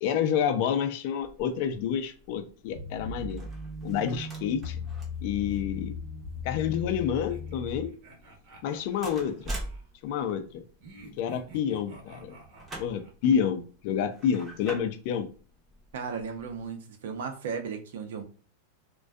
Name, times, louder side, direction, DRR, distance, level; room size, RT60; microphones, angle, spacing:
voice 1, 0.0-3.4 3.8-4.8 5.2-5.9 6.4-7.9 8.6-9.5 10.0-10.6 11.2-12.4 12.8-15.3, left 8 dB, 50° left, 9 dB, 0.4 m, -29 dB
sound 1, 1.2-16.7, right 1 dB, 15° right, 0.6 m, -46 dB
sound 2, 2.7-7.9, left 3 dB, 20° left, 0.7 m, -38 dB
sound 3, 7.2-9.9 10.8-13.4, right 3 dB, 45° right, 0.8 m, -51 dB
voice 2, 15.9-18.2, right 6 dB, 75° right, 5 dB, 0.6 m, -35 dB
2.5 x 2.2 x 2.2 m, 0.41 s
supercardioid pair, 155°, 0 cm